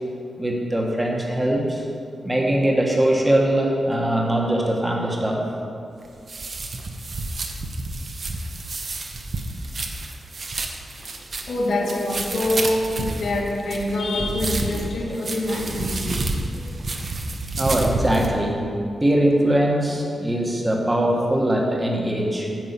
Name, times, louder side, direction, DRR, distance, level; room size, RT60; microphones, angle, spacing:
voice 1, 0.4-1.9 2.2-5.4 17.6-18.6 19.0-22.5, right 1 dB, 15° right, -1 dB, 1.4 m, -21 dB
sound 1, 6.0-18.3, right 2 dB, 40° right, 0.9 m, -30 dB
voice 2, 11.4-16.2 16.5-16.7, left 1 dB, 85° left, -4 dB, 2.2 m, -25 dB
9.6 x 5.4 x 8.2 m, 2.4 s
wide cardioid pair, 150°, 0 cm